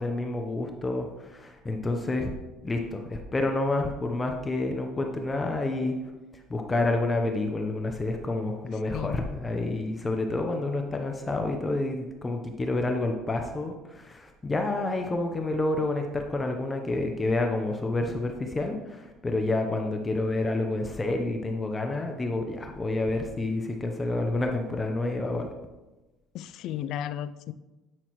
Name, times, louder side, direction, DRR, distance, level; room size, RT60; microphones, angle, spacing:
voice 1, 0.0-2.3 2.6-5.9 6.5-25.5, left 2 dB, 20° left, 3 dB, 0.9 m, -29 dB
voice 2, 26.3-27.5, left 10 dB, 65° left, 14 dB, 0.4 m, -34 dB
9.1 x 5.5 x 3.1 m, 1.1 s
supercardioid pair, 90°, 0 cm